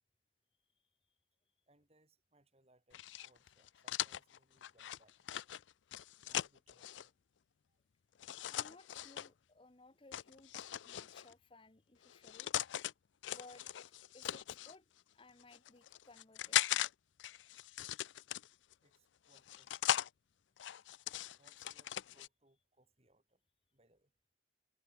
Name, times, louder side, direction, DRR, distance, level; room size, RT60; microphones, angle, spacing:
voice 1, 1.7-5.3 6.2-7.1 7.7-7.8 18.8-19.9 21.4-23.4 23.7-24.1, right 2 dB, 35° right, 4.7 m, -72 dB
sound 1, 2.9-7.1 8.2-9.3 10.1-11.3 12.0-12.9 13.2-14.7 15.4-16.9 17.2-18.7 19.3-20.1 20.6-22.3, left 12 dB, 80° left, 0.4 m, -39 dB
voice 2, 8.5-12.5 13.3-13.7 14.1-16.6, left 2 dB, 30° left, 1.0 m, -60 dB
head